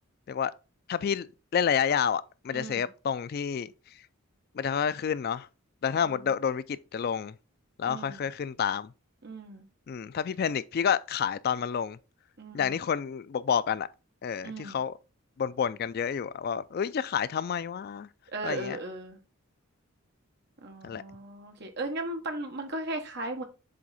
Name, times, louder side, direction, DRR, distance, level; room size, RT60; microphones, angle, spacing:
voice 1, 0.9-1.3 1.5-3.7 4.6-5.5 5.8-7.3 7.8-8.9 9.9-12.0 12.5-13.9 14.2-14.9 15.4-18.1 18.4-18.8 20.8-21.0, left 7 dB, 45° left, 0.3 m, -29 dB
voice 2, 2.5-2.9 5.9-6.4 7.9-8.3 9.2-9.7 12.4-12.8 14.4-14.8 18.3-19.2 20.6-23.4, right 2 dB, 50° right, 1.3 m, -37 dB
7.7 x 3.5 x 4.1 m
head